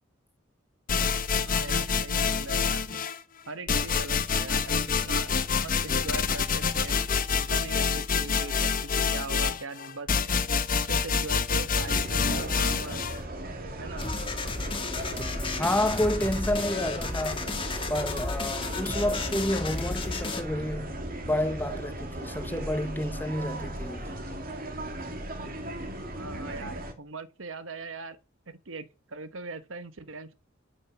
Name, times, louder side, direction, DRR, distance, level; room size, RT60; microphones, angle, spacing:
sound 1, 0.9-3.2 3.7-13.2, left 5 dB, 45° left, 1.0 m, -27 dB
voice 1, 1.4-2.9 3.5-7.1 7.3-10.1 10.8-13.0 13.8-14.1 26.1-28.2 28.5-30.3, right 3 dB, 70° right, 1.2 m, -40 dB
sound 2, 11.7-26.9, right 1 dB, 45° right, 2.2 m, -37 dB
sound 3, 14.0-20.4, left 3 dB, 25° left, 1.8 m, -33 dB
voice 2, 15.6-17.5 17.9-21.0 21.3-24.2, left 1 dB, 10° left, 1.2 m, -29 dB
11.5 x 7.7 x 6.1 m
head